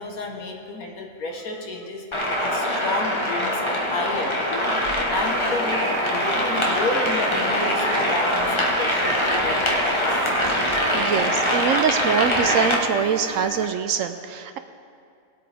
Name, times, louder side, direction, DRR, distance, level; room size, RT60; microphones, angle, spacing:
voice 1, 0.0-2.0 2.4-4.7 5.1-10.0, left 2 dB, 75° left, 1 dB, 1.8 m, -31 dB
sound 1, 2.1-12.8, equal, 20° left, 1.1 m, -23 dB
sound 2, 5.2-13.7, right 2 dB, 25° right, 0.4 m, -33 dB
voice 2, 10.9-14.6, right 7 dB, 70° right, 9 dB, 0.9 m, -24 dB
19.0 x 8.4 x 3.5 m, 2.3 s
omnidirectional pair, 1.5 m